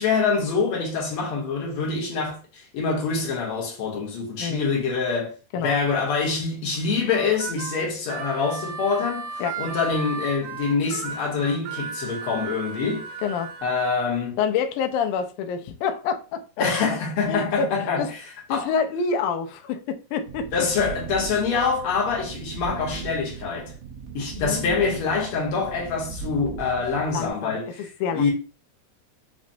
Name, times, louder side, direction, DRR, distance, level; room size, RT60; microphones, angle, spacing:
voice 1, 0.0-13.1 13.6-14.4 16.6-18.1 18.5-18.7 20.5-23.7 24.1-27.9 28.1-28.3, left 4 dB, 65° left, 1.4 m, -25 dB
Harmonica, 7.1-13.6, right 5 dB, 85° right, 2.5 m, -35 dB
voice 2, 13.2-13.5 14.4-16.7 17.3-18.1 18.5-20.5 24.4-24.9 27.1-28.3, left 6 dB, 80° left, 1.9 m, -27 dB
sound 1, 20.3-27.3, right 7 dB, 70° right, 2.1 m, -37 dB
5.8 x 2.1 x 2.5 m
omnidirectional pair, 4.0 m